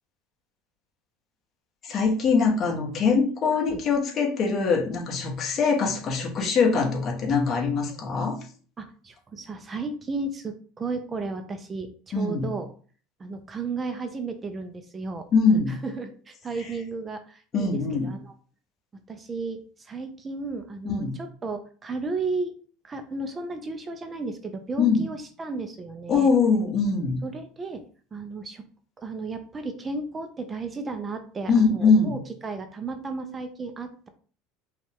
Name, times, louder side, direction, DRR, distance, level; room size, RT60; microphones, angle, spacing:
voice 1, 1.8-8.3 12.1-12.5 15.3-15.8 17.5-18.1 20.8-21.1 24.8-25.1 26.1-27.2 31.5-32.1, left 5 dB, 35° left, 0 dB, 1.3 m, -22 dB
voice 2, 8.8-12.7 13.2-15.3 15.7-18.3 19.1-22.5 22.8-26.3 27.2-27.8 28.1-28.6 29.0-34.1, right 3 dB, 20° right, 7 dB, 0.5 m, -34 dB
5.2 x 2.4 x 3.6 m, 0.42 s
supercardioid pair, 125°, 0 cm